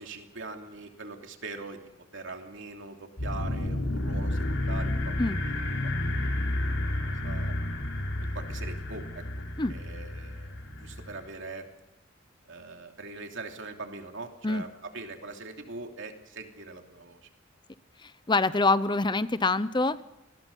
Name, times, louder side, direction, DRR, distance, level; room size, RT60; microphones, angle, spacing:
voice 1, 0.0-5.1 5.4-7.5 8.2-9.2 9.7-11.7 12.5-17.3, right 3 dB, 65° right, 3 dB, 3.0 m, -42 dB
sound 1, 3.2-11.3, left 1 dB, 70° left, 4.8 m, -31 dB
voice 2, 18.0-20.0, left 3 dB, 20° left, 14 dB, 0.8 m, -25 dB
28.0 x 21.0 x 5.5 m, 0.96 s
head